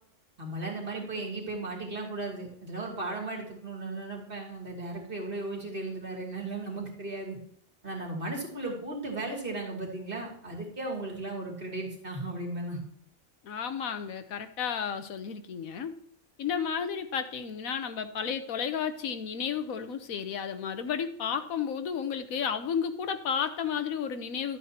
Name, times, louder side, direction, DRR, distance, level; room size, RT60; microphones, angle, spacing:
voice 1, 0.4-7.4 7.8-12.8, right 2 dB, 40° right, -1 dB, 2.8 m, -36 dB
voice 2, 13.4-15.9 16.4-24.6, left 7 dB, 90° left, 9 dB, 1.4 m, -32 dB
12.5 x 8.4 x 2.9 m, 0.65 s
omnidirectional pair, 1.4 m